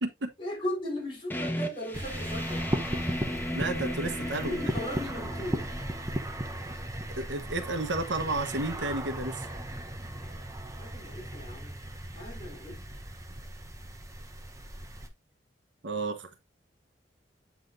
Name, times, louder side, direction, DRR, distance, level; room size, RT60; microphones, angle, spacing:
voice 1, 0.4-2.7 4.0-5.7 10.6-11.8 12.1-12.9, left 1 dB, 30° left, 3.9 m, -37 dB
sound 1, 1.3-6.7, equal, 10° left, 1.1 m, -36 dB
sound 2, 1.9-15.1, right 1 dB, 20° right, 0.9 m, -37 dB
voice 2, 3.5-4.5 7.2-9.4 15.8-16.3, right 2 dB, 80° right, 1.0 m, -31 dB
8.3 x 5.8 x 2.6 m
head